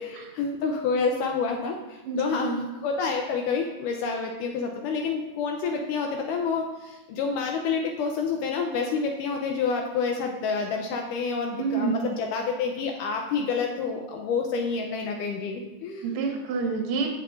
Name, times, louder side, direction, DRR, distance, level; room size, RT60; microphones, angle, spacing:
voice 1, 0.0-16.1, left 5 dB, 80° left, 2 dB, 2.0 m, -28 dB
voice 2, 2.1-2.6 11.6-11.9 16.0-17.1, right 4 dB, 65° right, 2 dB, 1.8 m, -28 dB
15.0 x 5.6 x 2.5 m, 1.0 s
omnidirectional pair, 4.2 m